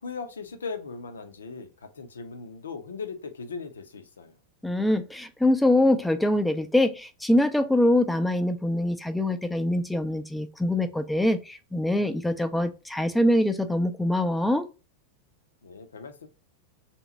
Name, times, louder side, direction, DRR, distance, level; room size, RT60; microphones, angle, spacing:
voice 1, 0.0-4.3 15.6-16.3, left 4 dB, 70° left, 0.7 m, -38 dB
voice 2, 4.6-14.7, left 1 dB, 5° left, 0.6 m, -24 dB
3.5 x 2.9 x 4.1 m
figure-of-eight pair, 90°, 0 cm